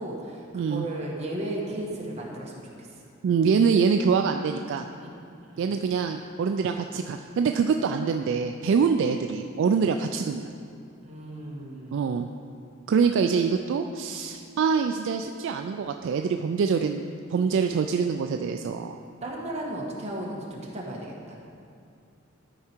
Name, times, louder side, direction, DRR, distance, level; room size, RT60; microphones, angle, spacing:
voice 1, 0.0-2.9 5.4-5.8 11.0-12.1 19.2-21.4, right 1 dB, 35° right, -3 dB, 1.3 m, -35 dB
voice 2, 0.5-0.9 3.2-4.8 5.6-10.5 11.9-12.3 12.9-17.0 17.3-19.0, right 5 dB, 65° right, 5 dB, 0.3 m, -25 dB
12.0 x 4.7 x 4.4 m, 2.4 s
head